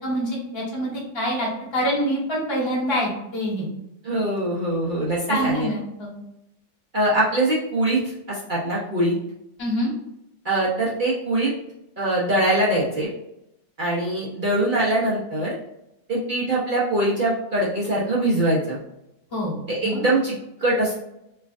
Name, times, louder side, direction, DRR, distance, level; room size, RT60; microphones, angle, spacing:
voice 1, 0.0-3.7 5.3-6.1 9.6-9.9 19.3-19.6 19.8-20.0, equal, 20° left, -6 dB, 0.9 m, -25 dB
voice 2, 4.0-5.7 6.9-9.1 10.4-11.5 12.0-13.1 13.8-15.6 16.1-18.8 19.7-21.0, right 1 dB, 55° right, -6 dB, 0.5 m, -23 dB
4.4 x 2.4 x 2.5 m, 0.84 s
omnidirectional pair, 2.0 m